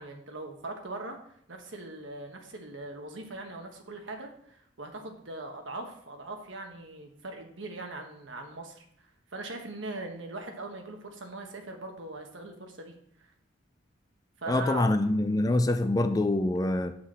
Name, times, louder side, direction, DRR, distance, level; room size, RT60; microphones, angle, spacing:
voice 1, 0.0-8.8 9.3-12.9 14.4-14.9, right 2 dB, 75° right, 1.3 m, -41 dB
voice 2, 14.5-16.9, left 2 dB, 20° left, 0.4 m, -25 dB
7.8 x 5.9 x 4.2 m
head